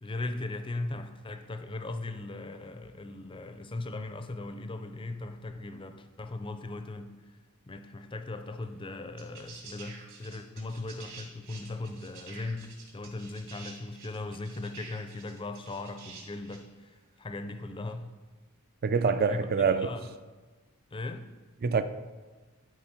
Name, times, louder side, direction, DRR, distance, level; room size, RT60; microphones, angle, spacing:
voice 1, 0.0-7.1 7.7-18.1 19.2-20.1 20.9-21.3, left 2 dB, 25° left, 0.5 m, -38 dB
sound 1, 8.6-8.7 9.2-16.7 17.9-18.0, right 5 dB, 60° right, 2.9 m, -48 dB
voice 2, 18.8-19.9 21.6-21.8, right 5 dB, 45° right, 0.4 m, -25 dB
12.0 x 4.7 x 4.4 m
head